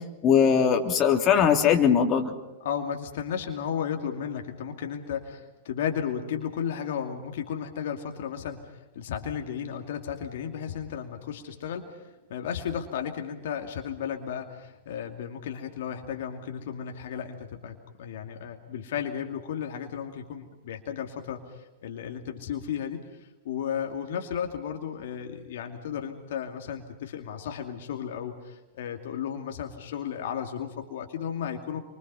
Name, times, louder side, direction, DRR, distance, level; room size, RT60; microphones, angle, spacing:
voice 1, 0.2-2.3, left 7 dB, 30° left, 3 dB, 3.1 m, -20 dB
voice 2, 2.6-31.8, left 8 dB, 65° left, 4 dB, 2.6 m, -34 dB
29.0 x 25.0 x 5.6 m, 1.0 s
hypercardioid pair, 105°, 0 cm